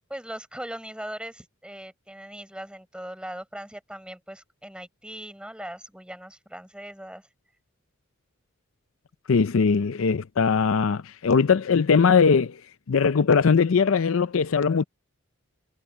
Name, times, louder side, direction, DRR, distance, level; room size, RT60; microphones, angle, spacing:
voice 1, 0.1-7.3, right 1 dB, 5° right, 6.2 m, -39 dB
voice 2, 9.3-12.6 12.9-14.8, left 5 dB, 70° left, 0.5 m, -20 dB
head